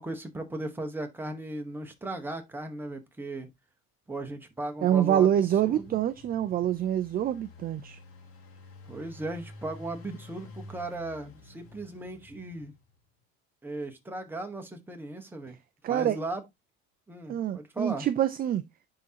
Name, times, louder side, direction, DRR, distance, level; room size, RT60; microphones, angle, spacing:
voice 1, 0.0-3.5 4.1-5.3 5.6-6.0 8.9-12.7 13.6-15.6 15.9-16.4 17.1-18.1, right 2 dB, 5° right, 1.2 m, -37 dB
voice 2, 4.8-8.0 15.8-16.2 17.3-18.6, right 11 dB, 30° right, 0.4 m, -26 dB
Engine, 5.0-13.0, left 2 dB, 50° left, 2.2 m, -50 dB
10.0 x 3.8 x 2.8 m
cardioid pair, 135°, 30 cm